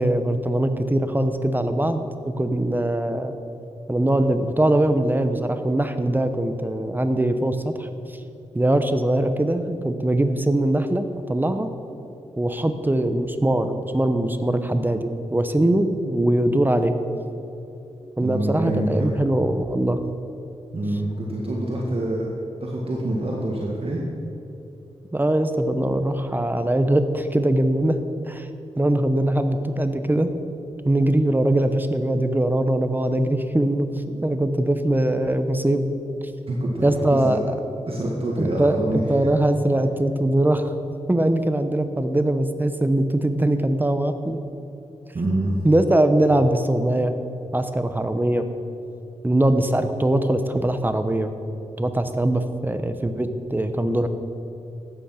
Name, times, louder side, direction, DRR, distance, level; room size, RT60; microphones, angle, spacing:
voice 1, 0.0-3.4 3.9-7.9 8.5-11.7 12.4-16.9 18.2-20.0 25.1-28.0 28.2-28.5 28.8-30.3 30.8-33.9 34.2-35.9 36.8-37.4 38.4-38.8 39.1-40.7 41.1-44.4 45.6-47.1 47.5-48.4 49.2-51.3 51.8-54.1, right 1 dB, 15° right, 8 dB, 0.9 m, -21 dB
voice 2, 18.2-19.1 20.7-22.3 22.6-24.4 34.1-34.2 36.5-37.4 37.9-39.0 45.1-45.5, right 1 dB, 50° right, -2 dB, 1.8 m, -26 dB
14.0 x 9.2 x 5.8 m, 2.9 s
wide cardioid pair, 75°, 12 cm